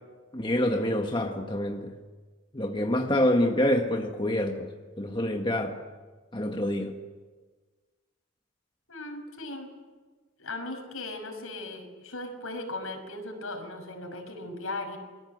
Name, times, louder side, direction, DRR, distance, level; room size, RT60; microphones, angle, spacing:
voice 1, 0.3-1.9 2.5-4.7 5.0-5.8 6.3-7.0, left 1 dB, 20° left, 1.6 m, -26 dB
voice 2, 8.9-9.7 10.4-15.0, left 2 dB, 85° left, 6.1 m, -37 dB
29.5 x 22.5 x 8.1 m
head